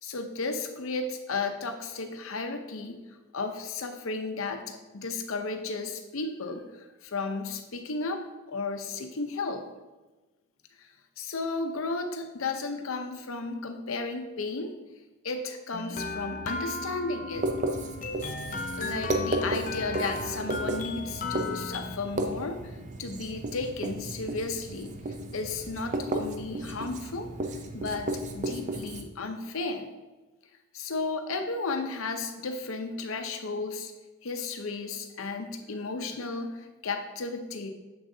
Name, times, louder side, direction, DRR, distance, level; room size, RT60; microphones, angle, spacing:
voice 1, 0.0-3.0 3.3-9.7 10.8-10.9 11.2-14.7 15.2-17.5 18.8-25.0 25.3-27.3 27.7-29.9 30.7-33.9 34.2-37.7, left 3 dB, 75° left, 6 dB, 0.7 m, -34 dB
sound 1, 15.7-22.0, left 3 dB, 35° left, 0.4 m, -36 dB
Writing, 17.3-29.0, right 1 dB, 35° right, 0.5 m, -34 dB
6.9 x 6.3 x 2.7 m, 1.2 s
head